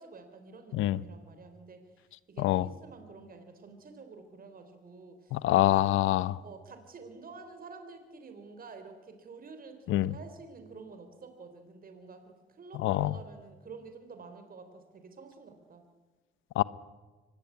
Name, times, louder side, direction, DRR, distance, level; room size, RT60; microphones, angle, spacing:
voice 1, 0.0-1.8 2.3-5.4 5.7-5.9 6.4-15.8, right 4 dB, 45° right, 3.8 m, -49 dB
voice 2, 5.3-6.4 9.9-10.1 12.8-13.1 16.6-16.7, left 15 dB, 85° left, 0.8 m, -25 dB
24.5 x 20.0 x 8.5 m
cardioid pair, 90°, 20 cm